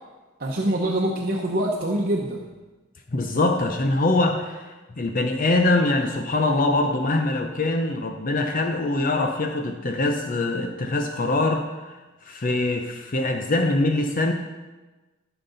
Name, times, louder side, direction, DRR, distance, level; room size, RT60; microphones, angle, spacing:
voice 1, 0.4-2.4, right 1 dB, 50° right, -2 dB, 0.9 m, -24 dB
voice 2, 3.1-12.0 12.3-14.3, left 2 dB, 45° left, 4 dB, 0.7 m, -23 dB
13.5 x 6.0 x 4.0 m, 1.2 s
head